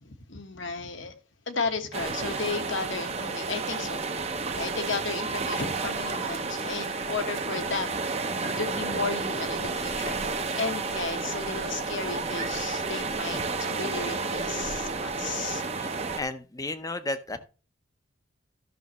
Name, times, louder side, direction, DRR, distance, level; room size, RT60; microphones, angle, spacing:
voice 1, 0.0-1.1 1.5-8.0 8.6-15.6, left 4 dB, 70° left, 1.4 m, -34 dB
sound 1, 1.9-16.2, right 4 dB, 30° right, 0.8 m, -31 dB
voice 2, 16.1-17.4, left 2 dB, 20° left, 0.7 m, -33 dB
13.5 x 6.4 x 3.1 m
head